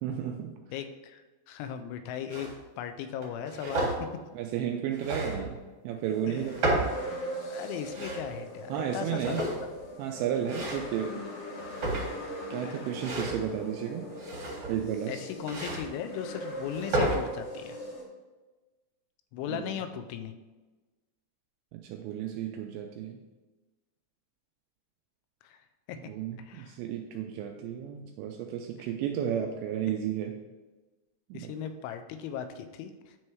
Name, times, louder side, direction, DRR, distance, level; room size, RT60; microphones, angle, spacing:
voice 1, 0.0-0.5 4.4-6.9 8.7-9.5 10.0-11.2 12.5-14.1 14.7-15.2 19.5-19.7 21.7-23.2 26.1-30.4 31.3-31.5, right 9 dB, 85° right, 2 dB, 2.5 m, -33 dB
voice 2, 0.7-1.2 1.5-2.5 2.8-3.9 6.3-6.4 7.5-9.7 10.5-10.7 12.6-12.9 15.1-17.8 19.3-20.4 25.4-25.6 25.9-26.0 26.4-26.8 31.3-33.2, left 8 dB, 85° left, 8 dB, 2.9 m, -37 dB
sound 1, 2.3-2.5 3.2-4.0 4.9-5.6 6.3-7.0 7.7-8.3 9.1-9.8 10.5-10.9 11.6-12.3 12.9-13.4 14.1-14.8 15.5-15.8 16.6-17.2, right 2 dB, 55° right, 1.4 m, -32 dB
sound 2, 6.1-18.0, equal, 65° left, 2.3 m, -41 dB
9.5 x 3.2 x 4.5 m, 1.2 s
omnidirectional pair, 5.5 m